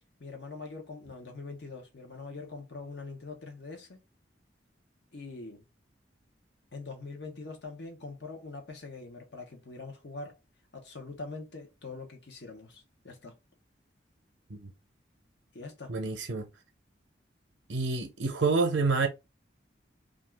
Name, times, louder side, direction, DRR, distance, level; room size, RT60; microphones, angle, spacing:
voice 1, 0.2-4.0 5.1-5.6 6.7-10.4 10.7-13.3 15.5-15.9, left 3 dB, 65° left, 0.9 m, -43 dB
voice 2, 15.9-16.5 17.7-19.1, right 4 dB, 85° right, 0.6 m, -28 dB
2.6 x 2.3 x 3.3 m
head